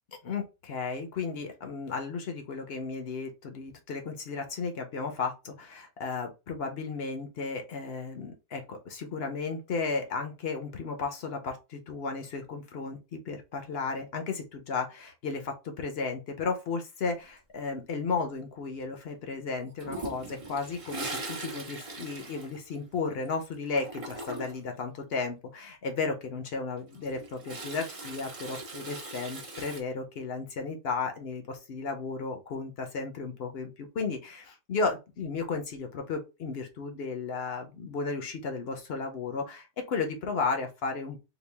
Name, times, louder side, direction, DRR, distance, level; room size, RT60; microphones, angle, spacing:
voice 1, 0.1-41.2, left 4 dB, 55° left, 4 dB, 0.7 m, -34 dB
Toilet flush, 19.8-23.3 23.5-24.7 26.8-29.8, right 2 dB, 45° right, 0.4 m, -40 dB
3.9 x 2.3 x 3.4 m, 0.27 s
omnidirectional pair, 1.8 m